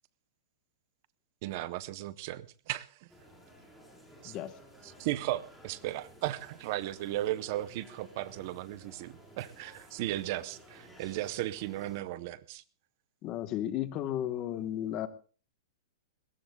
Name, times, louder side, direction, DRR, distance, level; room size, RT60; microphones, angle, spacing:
voice 1, 1.4-3.1 4.2-4.3 4.8-12.6, right 15 dB, 35° right, 0.6 m, -36 dB
sound 1, 3.1-12.0, equal, ahead, 3.9 m, -55 dB
voice 2, 4.2-4.5 13.2-15.1, left 11 dB, 25° left, 1.0 m, -34 dB
24.0 x 20.5 x 2.2 m
supercardioid pair, 175°, 2 cm